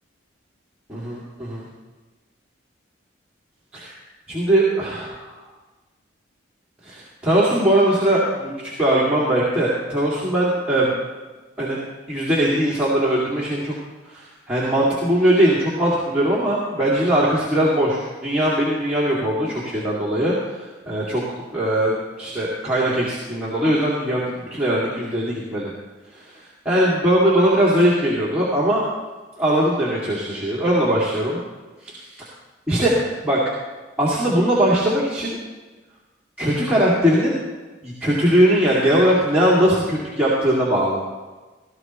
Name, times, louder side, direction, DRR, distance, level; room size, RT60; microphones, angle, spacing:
voice 1, 0.9-1.7 3.7-3.9 4.3-5.2 6.8-10.9 11.6-11.8 12.1-13.7 14.1-20.3 20.9-21.2 21.5-25.7 26.1-26.2 26.6-28.8 29.4-31.4 31.8-32.3 32.7-32.9 33.2-33.4 34.0-35.4 36.4-37.4 37.8-41.0, right 1 dB, 5° right, -7 dB, 2.3 m, -20 dB
18.5 x 13.5 x 3.1 m, 1.3 s
head